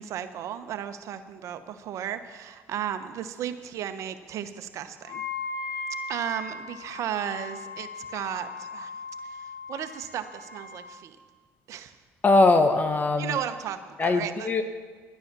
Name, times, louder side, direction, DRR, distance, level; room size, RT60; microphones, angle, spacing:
voice 1, 0.0-5.2 6.1-8.9 9.3-11.2 11.7-12.0 13.2-14.5, right 9 dB, 65° right, 10 dB, 0.9 m, -34 dB
Wind instrument woodwind instrument, 5.0-10.9, left 4 dB, 70° left, 3.3 m, -38 dB
voice 2, 12.2-13.4 14.0-14.6, left 3 dB, 30° left, 8 dB, 0.9 m, -21 dB
11.5 x 9.7 x 6.9 m, 1.5 s
supercardioid pair, 75°, 6 cm